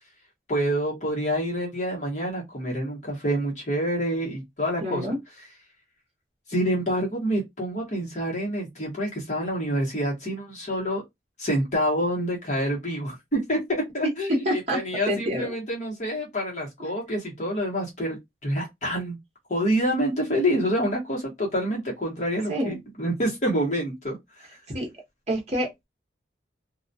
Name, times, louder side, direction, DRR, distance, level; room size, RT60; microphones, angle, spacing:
voice 1, 0.5-5.0 6.5-11.0 11.4-18.2 18.4-19.2 19.5-24.2, equal, 40° left, 1.0 m, -27 dB
voice 2, 4.8-5.2 14.0-14.8 15.1-15.5 22.5-22.8 24.7-24.9 25.3-25.9, equal, 35° right, 0.9 m, -27 dB
2.3 x 2.2 x 2.6 m
head